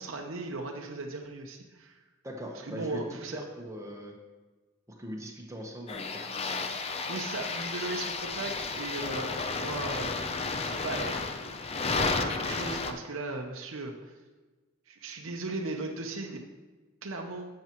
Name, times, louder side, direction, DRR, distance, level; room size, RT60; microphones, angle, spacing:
voice 1, 0.0-2.0 2.6-3.4 7.1-10.2 10.6-11.5 11.7-14.1 14.9-16.4 17.0-17.5, right 3 dB, 70° right, 2 dB, 0.8 m, -37 dB
voice 2, 2.2-4.1 4.9-6.7, equal, 15° right, 0 dB, 1.1 m, -41 dB
sound 1, 5.9-12.9, left 4 dB, 30° left, 0.5 m, -32 dB
11.0 x 7.6 x 3.0 m, 1.3 s
head